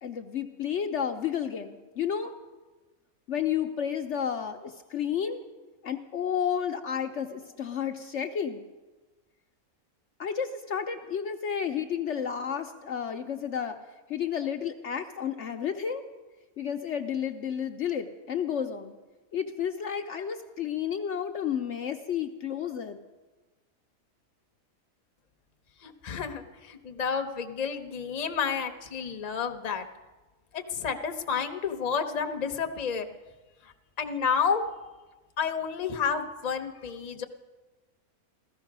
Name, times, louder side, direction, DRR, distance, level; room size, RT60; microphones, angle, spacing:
voice 1, 0.0-2.3 3.3-5.4 5.8-8.6 10.2-13.8 14.1-16.0 16.6-19.0 19.3-23.0, left 8 dB, 60° left, 5 dB, 1.0 m, -31 dB
voice 2, 25.8-29.8 30.5-33.1 34.0-34.6 35.4-37.2, left 6 dB, 35° left, 5 dB, 0.9 m, -30 dB
15.5 x 14.0 x 6.0 m, 1.2 s
omnidirectional pair, 1.5 m